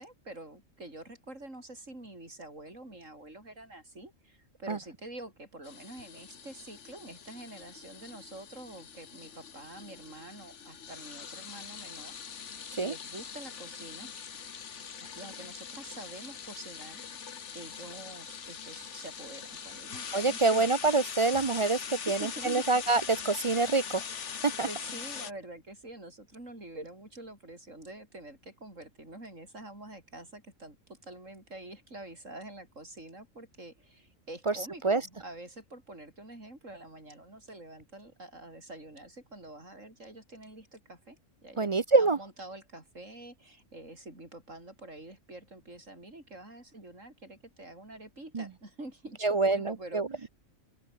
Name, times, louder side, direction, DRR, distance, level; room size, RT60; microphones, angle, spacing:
voice 1, 0.0-12.5 12.8-14.1 15.0-20.7 21.9-22.6 24.7-41.2 41.4-50.3, right 1 dB, 70° right, 7.8 m, -47 dB
sound 1, 5.6-25.3, left 7 dB, 60° left, 1.6 m, -42 dB
voice 2, 20.1-24.0 24.4-24.7 34.5-34.6 34.8-35.0 41.6-42.2 48.3-48.4 49.2-50.1, right 3 dB, 40° right, 0.4 m, -26 dB
open air
omnidirectional pair, 1.4 m